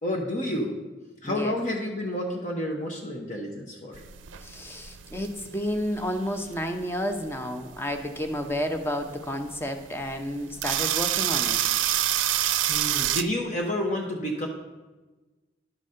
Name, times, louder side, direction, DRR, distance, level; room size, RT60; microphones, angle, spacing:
voice 1, 0.0-0.8 1.2-4.0 12.7-14.5, left 1 dB, 40° left, 0 dB, 0.9 m, -30 dB
voice 2, 1.2-1.5 4.4-11.6, equal, 10° left, 5 dB, 0.7 m, -31 dB
sound 1, 3.9-13.2, right 12 dB, 85° right, 0.5 m, -28 dB
11.0 x 4.1 x 6.4 m, 1.2 s
head